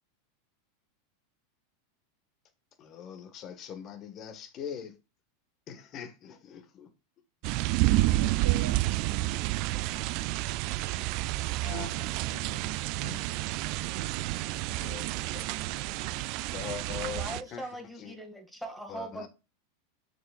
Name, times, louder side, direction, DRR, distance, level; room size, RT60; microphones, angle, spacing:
voice 1, 2.8-5.0 5.7-6.9 11.6-11.9 13.0-13.2 14.8-15.5 16.1-16.2 16.5-17.2 17.5-17.6 18.0-18.2 18.9-19.3, left 8 dB, 40° left, 1.4 m, -41 dB
sound 1, 7.4-17.4, right 18 dB, 55° right, 0.3 m, -30 dB
voice 2, 7.8-11.9 12.3-13.1 13.9-16.3 17.5-17.6, right 7 dB, 75° right, 1.3 m, -48 dB
voice 3, 17.1-19.3, right 1 dB, ahead, 1.9 m, -40 dB
6.9 x 6.4 x 2.4 m
hypercardioid pair, 95°, 0 cm